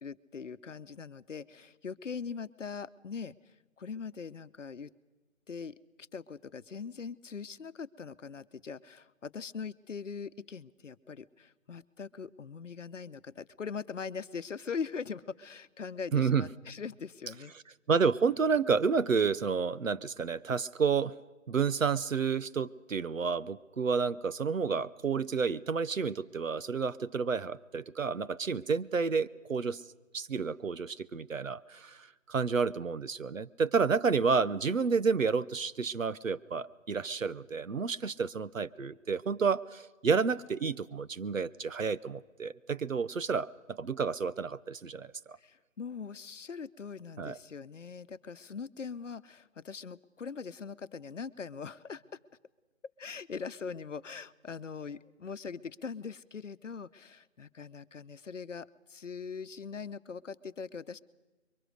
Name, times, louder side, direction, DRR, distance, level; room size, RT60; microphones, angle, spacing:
voice 1, 0.0-3.3 3.8-4.9 5.5-5.7 6.1-17.5 45.4-52.0 53.0-61.0, left 5 dB, 70° left, 13 dB, 0.9 m, -41 dB
voice 2, 16.1-16.5 17.9-21.2 21.5-29.8 30.1-45.4 47.2-47.4, right 5 dB, 80° right, 15 dB, 0.9 m, -30 dB
25.0 x 23.0 x 6.5 m, 1.2 s
figure-of-eight pair, 150°, 39 cm